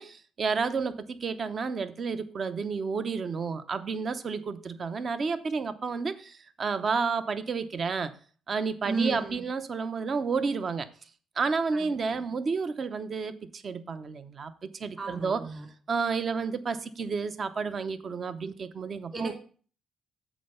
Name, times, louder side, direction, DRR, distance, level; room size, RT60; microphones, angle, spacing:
voice 1, 0.0-8.1 8.5-10.9 11.4-15.4 15.9-19.3, right 5 dB, 50° right, 0.8 m, -31 dB
voice 2, 8.8-9.4 11.7-12.3 15.0-15.7 19.1-19.3, right 3 dB, 30° right, 3.0 m, -34 dB
7.5 x 4.4 x 6.6 m
supercardioid pair, 70°, 0 cm